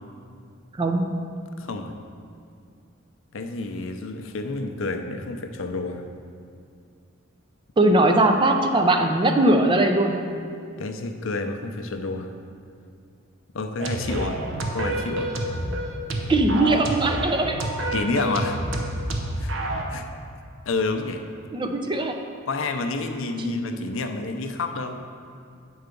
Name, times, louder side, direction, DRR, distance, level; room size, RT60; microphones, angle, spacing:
voice 1, 0.8-1.1 7.8-10.3 16.3-17.7 21.5-22.2 23.4-23.6, right 2 dB, 25° right, 5 dB, 0.4 m, -20 dB
voice 2, 1.6-1.9 3.3-6.0 10.8-12.3 13.5-14.4 14.7-15.3 17.9-18.6 19.4-19.5 19.9-20.1 20.7-21.2 22.5-25.0, left 3 dB, 65° left, 6 dB, 0.5 m, -29 dB
sound 1, 13.8-19.8, right 1 dB, 60° right, 0.7 m, -28 dB
7.9 x 4.6 x 5.2 m, 2.4 s
head